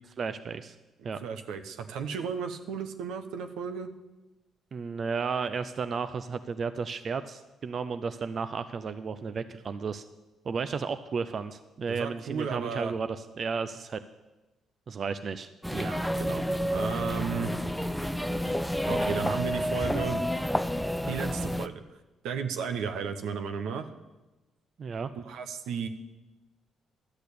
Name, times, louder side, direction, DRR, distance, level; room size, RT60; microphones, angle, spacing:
voice 1, 0.2-0.8 1.0-1.2 4.7-10.0 10.4-14.0 14.9-15.5 24.8-25.1, right 5 dB, 50° right, 11 dB, 0.5 m, -33 dB
voice 2, 1.2-3.9 11.9-12.9 15.7-16.4 16.7-17.5 18.9-20.2 21.1-21.8 22.2-23.9 25.2-25.9, right 6 dB, 85° right, 7 dB, 1.0 m, -34 dB
sound 1, 15.6-21.7, equal, ahead, 0.5 m, -29 dB
12.0 x 6.5 x 8.4 m, 1.1 s
cardioid pair, 90°, 0 cm